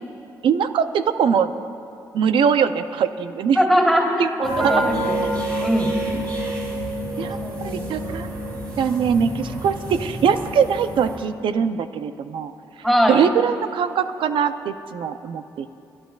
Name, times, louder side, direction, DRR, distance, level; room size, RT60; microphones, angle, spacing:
voice 1, 0.4-1.5 2.1-3.6 4.2-4.8 7.2-8.3 8.8-12.5 13.1-15.8, right 7 dB, 75° right, 10 dB, 0.6 m, -22 dB
voice 2, 3.5-5.2 5.6-5.9 7.4-8.0 12.8-13.2, equal, 5° right, -2 dB, 2.8 m, -21 dB
sound 1, 4.4-11.2, right 1 dB, 55° right, 3.4 m, -28 dB
29.5 x 11.5 x 2.4 m, 2.7 s
supercardioid pair, 55°, 9 cm